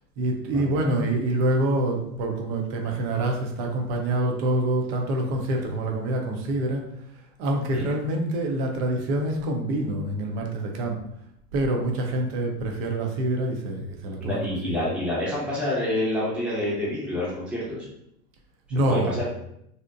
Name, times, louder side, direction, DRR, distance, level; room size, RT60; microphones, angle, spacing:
voice 1, 0.2-6.8 7.4-11.0 11.5-14.9 18.7-19.2, right 1 dB, 45° right, 2 dB, 0.6 m, -26 dB
voice 2, 14.2-17.8 18.9-19.3, left 1 dB, ahead, -8 dB, 0.8 m, -28 dB
2.7 x 2.1 x 2.4 m, 0.76 s
hypercardioid pair, 100°, 46 cm